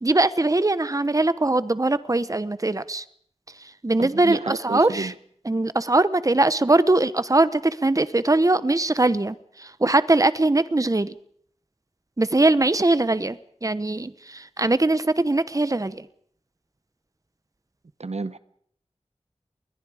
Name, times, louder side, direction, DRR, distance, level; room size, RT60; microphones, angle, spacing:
voice 1, 0.0-3.0 3.6-5.1 5.4-11.1 12.2-16.1, right 2 dB, 30° right, 15 dB, 1.0 m, -21 dB
voice 2, 4.0-5.1 18.0-18.4, right 3 dB, 70° right, 14 dB, 0.9 m, -30 dB
29.5 x 21.5 x 5.0 m, 0.64 s
wide cardioid pair, 50°, 12 cm